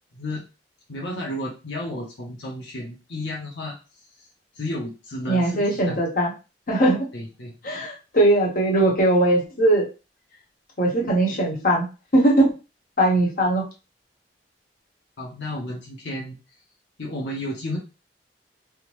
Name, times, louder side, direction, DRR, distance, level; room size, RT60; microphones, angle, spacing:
voice 1, 0.1-0.4 0.9-3.7 4.2-4.3 4.5-6.0 7.1-7.5 15.2-16.4 17.0-17.8, left 1 dB, 85° left, -2 dB, 0.8 m, -32 dB
voice 2, 5.3-6.3 6.7-7.0 7.6-9.9 10.8-11.9 12.1-12.5 13.0-13.6, right 1 dB, 55° left, -2 dB, 1.1 m, -20 dB
3.5 x 2.1 x 3.0 m, 0.31 s
head